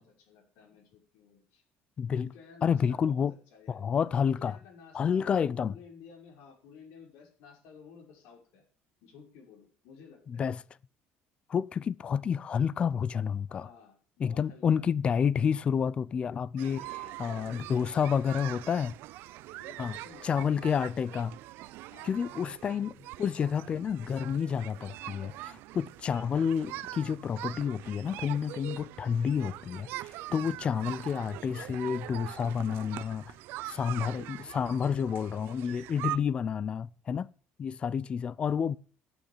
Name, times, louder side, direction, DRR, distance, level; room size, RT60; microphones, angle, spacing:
voice 1, 0.0-1.6 2.1-3.7 4.2-8.6 9.0-10.4 13.5-14.8 16.9-17.1 17.4-18.8 19.6-20.9 21.9-22.3 37.8-38.2, left 5 dB, 85° left, 6.1 m, -54 dB
voice 2, 2.0-2.3 2.6-3.3 3.7-4.6 4.9-5.8 10.3-10.6 11.5-13.7 14.2-18.9 19.8-20.0 20.2-21.4 22.0-33.3 33.7-37.3 37.6-38.8, left 7 dB, 30° left, 0.5 m, -30 dB
sound 1, 16.6-36.2, right 16 dB, 65° right, 0.6 m, -43 dB
12.0 x 8.7 x 7.3 m
cardioid pair, 160°, 4 cm